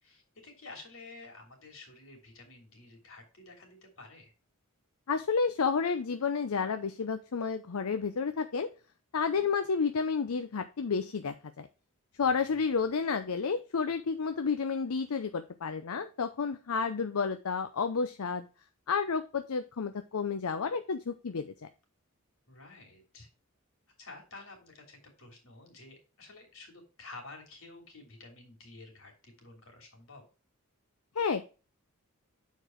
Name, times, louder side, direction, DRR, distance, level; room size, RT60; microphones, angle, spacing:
voice 1, 0.0-4.3 9.2-9.5 12.3-12.7 22.5-23.3 24.0-30.2, left 3 dB, 70° left, 1 dB, 3.0 m, -51 dB
voice 2, 5.1-8.7 9.1-11.7 12.2-18.5 18.9-21.5 31.2-31.4, left 5 dB, 90° left, 9 dB, 0.6 m, -31 dB
6.9 x 4.6 x 4.5 m, 0.33 s
head